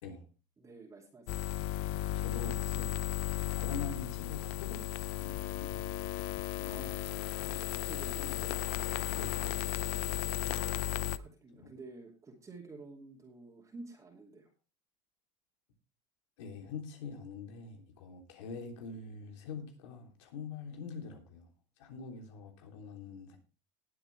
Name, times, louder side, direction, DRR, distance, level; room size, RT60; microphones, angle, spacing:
voice 1, 0.6-1.4 6.6-6.9 7.6-8.6 10.5-14.5, right 3 dB, 20° right, 2.8 m, -51 dB
sound 1, 1.3-11.2, left 15 dB, 65° left, 0.6 m, -35 dB
voice 2, 2.2-5.9 6.6-6.7 8.2-8.3 9.1-9.7 11.5-11.7 16.4-21.5 21.8-23.4, left 4 dB, 85° left, 3.4 m, -45 dB
19.0 x 7.7 x 3.4 m
supercardioid pair, 125°, 15 cm